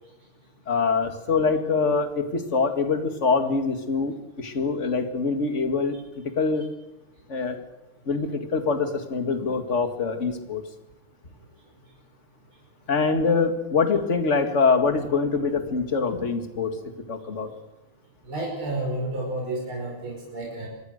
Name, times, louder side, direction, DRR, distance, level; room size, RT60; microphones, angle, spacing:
voice 1, 0.7-6.0 6.4-6.7 7.3-7.6 8.1-10.6 12.9-16.8 17.1-17.5, left 4 dB, 35° left, 7 dB, 2.2 m, -24 dB
voice 2, 18.3-20.7, right 1 dB, 75° right, -1 dB, 6.1 m, -30 dB
25.0 x 19.0 x 6.6 m, 1.0 s
omnidirectional pair, 2.3 m